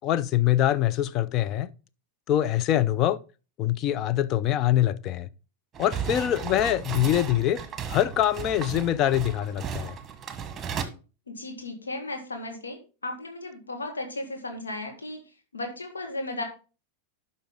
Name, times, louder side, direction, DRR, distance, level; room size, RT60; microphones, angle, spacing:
voice 1, 0.0-1.7 2.3-3.2 3.6-5.3 5.8-7.6 7.9-10.0, left 12 dB, 35° left, 0.5 m, -24 dB
sound 1, 5.7-10.8, right 7 dB, 20° right, 1.3 m, -35 dB
voice 2, 11.3-15.2 15.5-16.4, left 2 dB, 75° left, 1.8 m, -35 dB
11.5 x 5.4 x 3.8 m
figure-of-eight pair, 90°, 0 cm